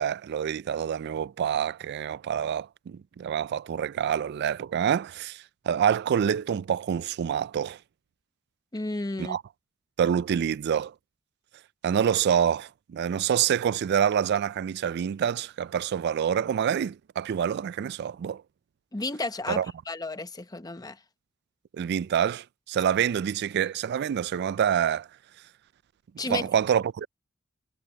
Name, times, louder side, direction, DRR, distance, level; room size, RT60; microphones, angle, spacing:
voice 1, 0.0-7.8 9.2-9.4 10.0-10.9 11.8-18.4 19.5-19.7 21.7-25.1 26.3-27.1, right 8 dB, 55° right, 0.3 m, -27 dB
voice 2, 8.7-9.4 18.9-21.0 26.2-26.5, left 2 dB, 20° left, 0.8 m, -33 dB
head